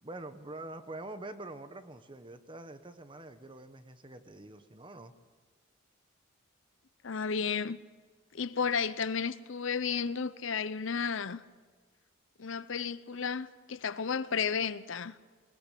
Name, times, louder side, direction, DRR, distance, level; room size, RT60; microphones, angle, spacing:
voice 1, 0.0-5.1, right 2 dB, 25° right, 10 dB, 1.1 m, -45 dB
voice 2, 7.0-7.8 8.3-11.4 12.4-15.2, left 6 dB, 65° left, 15 dB, 0.7 m, -33 dB
21.0 x 20.0 x 8.4 m, 1.5 s
head